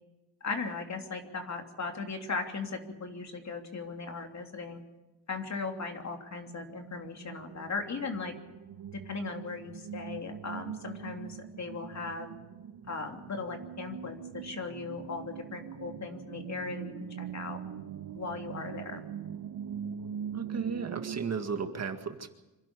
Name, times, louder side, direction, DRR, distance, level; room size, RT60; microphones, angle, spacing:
voice 1, 0.4-4.8 5.3-8.3 8.9-12.3 12.9-17.6 18.1-19.1, left 4 dB, 40° left, 4 dB, 3.2 m, -38 dB
sound 1, 6.1-21.3, right 8 dB, 55° right, 1.2 m, -42 dB
voice 2, 20.3-22.3, right 6 dB, 40° right, 6 dB, 1.9 m, -34 dB
26.5 x 12.0 x 9.9 m, 1.0 s
cardioid pair, 110°, 41 cm